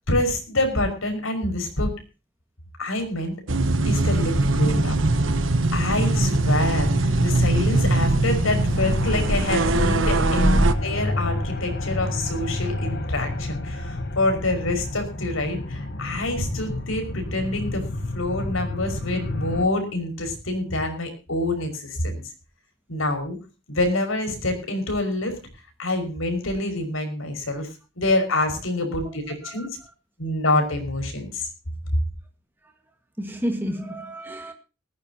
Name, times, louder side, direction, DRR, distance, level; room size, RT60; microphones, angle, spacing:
voice 1, 0.1-1.9 2.8-3.3 3.9-5.0 5.7-17.9 18.1-22.2 22.9-23.4 23.7-25.4 25.8-27.7 28.0-29.7 30.2-31.5, left 2 dB, 80° left, 5.6 m, -26 dB
sound 1, 3.5-10.7, right 2 dB, 65° right, 1.2 m, -21 dB
sound 2, 5.9-19.7, left 1 dB, 50° left, 1.6 m, -30 dB
voice 2, 33.2-34.5, equal, 10° right, 1.8 m, -30 dB
19.0 x 16.0 x 2.9 m
head